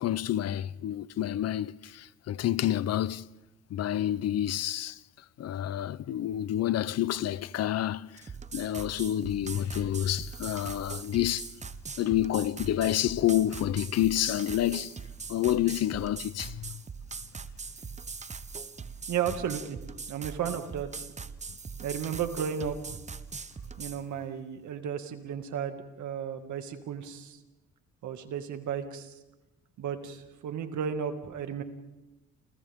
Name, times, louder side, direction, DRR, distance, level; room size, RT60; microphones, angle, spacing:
voice 1, 0.0-3.3 3.7-5.0 5.4-8.1 8.5-11.5 12.0-14.9 15.3-16.7, left 12 dB, 60° left, 0.6 m, -28 dB
sound 1, 8.2-24.0, right 5 dB, 25° right, 0.9 m, -41 dB
voice 2, 19.1-19.8 20.1-21.1 21.8-23.0 23.8-27.4 28.0-29.2 29.8-31.6, right 8 dB, 80° right, 2.1 m, -34 dB
29.0 x 28.5 x 3.6 m
cardioid pair, 120°, 29 cm